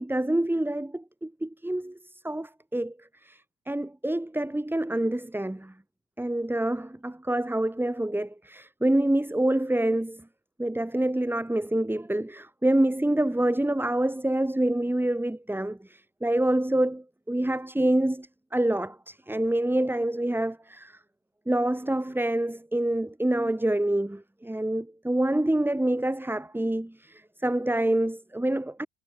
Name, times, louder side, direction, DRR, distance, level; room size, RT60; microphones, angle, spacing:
voice 1, 0.0-2.0 2.2-5.7 6.2-10.2 10.6-21.0 21.5-28.9, right 1 dB, 5° right, 2.8 m, -27 dB
hypercardioid pair, 60°, 33 cm